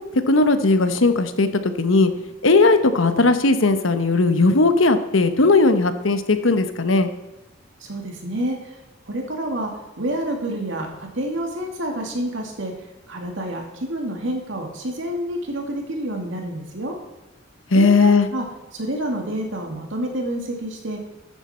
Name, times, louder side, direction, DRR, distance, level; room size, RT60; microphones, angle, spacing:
voice 1, 0.1-2.1 2.4-7.1 17.7-18.3, left 3 dB, 80° left, 9 dB, 1.0 m, -17 dB
voice 2, 7.8-8.8 9.1-9.7 10.0-17.0 17.7-18.5 18.7-21.0, right 1 dB, 70° right, 2 dB, 2.4 m, -28 dB
14.0 x 9.0 x 4.4 m, 1.0 s
head